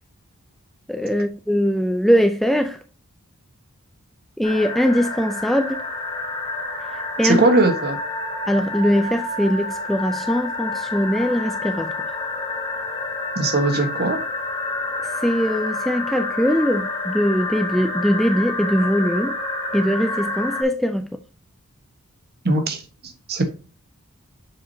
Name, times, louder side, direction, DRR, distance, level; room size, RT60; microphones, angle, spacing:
voice 1, 0.9-2.8 4.4-5.8 6.9-7.5 8.5-11.9 15.2-19.4 19.7-21.1, equal, ahead, 0.5 m, -21 dB
sound 1, 4.4-20.6, left 2 dB, 25° left, 1.4 m, -28 dB
voice 2, 7.2-8.0 13.4-14.2 22.4-22.8 23.3-23.4, right 2 dB, 45° right, 1.3 m, -19 dB
7.4 x 4.9 x 2.7 m
head